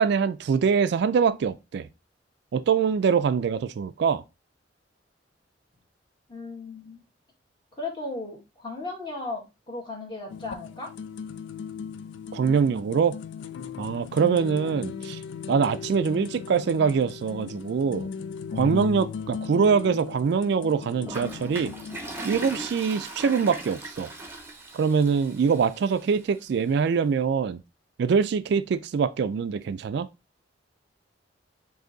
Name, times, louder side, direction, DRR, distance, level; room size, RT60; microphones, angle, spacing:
voice 1, 0.0-1.9 2.5-4.2 12.3-13.2 13.8-15.2 15.5-18.1 18.5-21.7 22.2-24.1 24.7-27.6 28.0-30.1, right 6 dB, 65° right, 0.3 m, -24 dB
voice 2, 6.3-7.0 7.7-9.4 9.7-10.9 14.6-14.7, left 3 dB, 25° left, 1.7 m, -36 dB
sound 1, 10.3-22.0, left 6 dB, 85° left, 0.3 m, -37 dB
Toilet flush, 21.1-26.1, right 1 dB, 15° right, 0.7 m, -39 dB
5.1 x 2.7 x 3.8 m
head